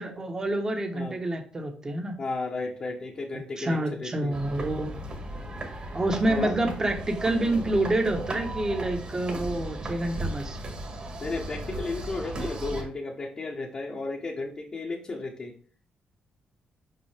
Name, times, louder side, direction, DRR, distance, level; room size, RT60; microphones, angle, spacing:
voice 1, 0.0-2.1 3.6-4.9 5.9-10.6, right 1 dB, 25° right, 4 dB, 1.3 m, -28 dB
voice 2, 2.2-4.3 6.2-6.5 11.2-15.5, left 3 dB, 35° left, -2 dB, 1.1 m, -34 dB
sound 1, 4.3-12.8, right 1 dB, 40° right, 2.0 m, -36 dB
6.0 x 5.4 x 3.4 m, 0.42 s
cardioid pair, 120°, 3 cm